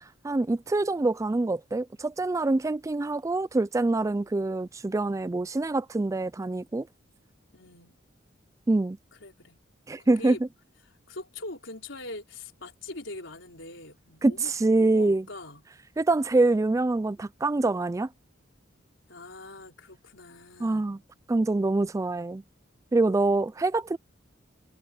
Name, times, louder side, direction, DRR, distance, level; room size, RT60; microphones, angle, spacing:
voice 1, 0.2-6.9 8.7-9.0 9.9-10.4 14.2-15.2 16.0-18.1 20.6-21.0 21.3-22.4 22.9-24.0, right 2 dB, 15° right, 0.3 m, -25 dB
voice 2, 7.5-8.0 9.1-9.6 10.0-10.4 11.1-14.5 14.8-15.6 19.1-20.9 23.0-23.4, left 2 dB, 70° left, 4.9 m, -42 dB
head